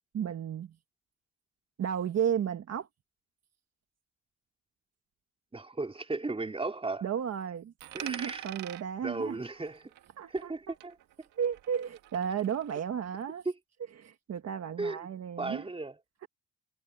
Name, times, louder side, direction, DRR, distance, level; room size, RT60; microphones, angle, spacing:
voice 1, 0.1-0.7 1.8-2.9 7.0-7.7 8.0-9.4 10.2-10.5 11.4-13.5 14.0-15.7, right 8 dB, 55° right, 1.7 m, -33 dB
voice 2, 5.5-7.1 7.9-8.5 9.0-9.9 10.3-11.0 14.8-15.0 15.4-16.0, right 3 dB, 20° right, 3.9 m, -35 dB
Coin (dropping), 7.8-10.6 10.8-12.8, right 13 dB, 90° right, 1.6 m, -46 dB
cardioid pair, 90°, 30 cm